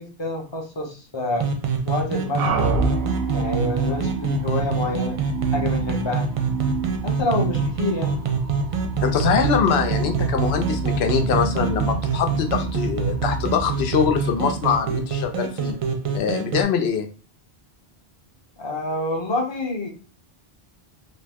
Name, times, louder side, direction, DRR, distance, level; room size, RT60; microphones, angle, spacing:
voice 1, 0.0-1.5 1.8-2.7 3.3-5.2 5.5-6.3 7.0-8.1 18.6-19.9, left 2 dB, 30° left, 0 dB, 0.6 m, -27 dB
sound 1, 1.3-16.6, right 5 dB, 50° right, 0.4 m, -26 dB
sound 2, 2.4-15.2, right 4 dB, 70° right, 0.9 m, -29 dB
voice 2, 9.0-15.7 16.1-17.1, left 6 dB, 80° left, 6 dB, 0.8 m, -23 dB
2.9 x 2.0 x 3.4 m, 0.36 s
omnidirectional pair, 1.1 m